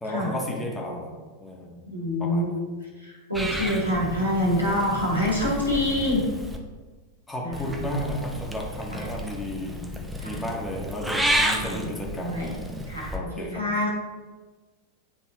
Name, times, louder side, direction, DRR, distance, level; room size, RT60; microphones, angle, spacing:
voice 1, 0.0-1.8 2.2-2.4 7.3-12.4 13.1-13.6, equal, 10° left, -1 dB, 1.2 m, -33 dB
voice 2, 1.9-2.6 3.0-6.2 7.4-7.8 8.9-9.1 10.2-10.4 11.6-11.9 12.2-12.5 12.9-13.9, left 1 dB, 90° right, -4 dB, 1.8 m, -26 dB
Purr / Meow, 3.3-6.6 7.5-13.2, equal, 5° right, 0.7 m, -31 dB
9.4 x 3.8 x 3.0 m, 1.3 s
figure-of-eight pair, 90°, 0 cm